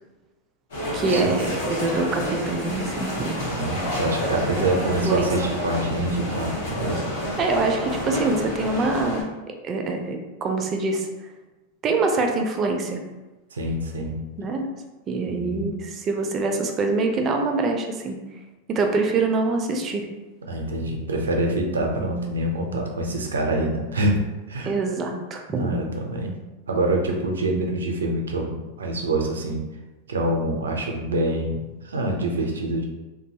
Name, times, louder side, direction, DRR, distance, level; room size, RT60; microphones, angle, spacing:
sound 1, 0.7-9.2, equal, 85° left, 1.3 m, -29 dB
voice 1, 0.9-3.4 4.8-5.3 7.4-9.3 9.6-11.1 11.8-13.0 14.4-14.7 15.1-18.2 18.7-20.1 24.6-25.7, right 3 dB, 35° right, 4 dB, 0.4 m, -25 dB
voice 2, 3.5-7.0 13.5-14.2 15.3-15.7 20.5-24.2 24.5-24.8 25.6-26.3 26.7-29.6 30.1-32.8, right 1 dB, 90° right, 1 dB, 0.5 m, -26 dB
2.6 x 2.2 x 2.7 m, 1.1 s
hypercardioid pair, 100°, 0 cm